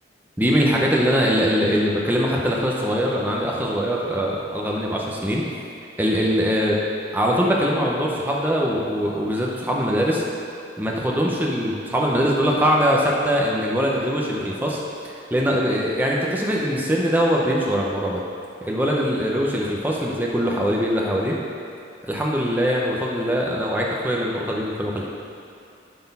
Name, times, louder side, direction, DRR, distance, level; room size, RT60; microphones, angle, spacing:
voice 1, 0.4-5.4 6.0-6.8 7.1-10.2 10.8-14.8 15.0-18.2 18.6-21.3 22.0-25.0, equal, 10° right, -3 dB, 0.7 m, -22 dB
11.0 x 4.2 x 5.4 m, 2.6 s
head